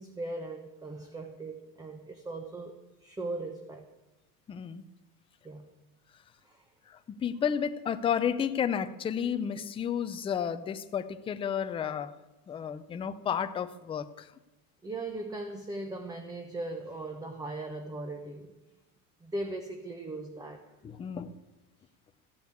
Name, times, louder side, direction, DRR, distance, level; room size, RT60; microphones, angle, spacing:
voice 1, 0.0-3.9 5.4-5.7 6.4-6.6 14.8-18.5 19.2-20.6, right 2 dB, 10° right, 4 dB, 1.0 m, -39 dB
voice 2, 4.5-4.8 7.1-12.1 12.5-14.3 20.8-21.3, left 8 dB, 15° left, 10 dB, 0.5 m, -32 dB
14.5 x 8.1 x 8.5 m, 1.1 s
supercardioid pair, 150°, 44 cm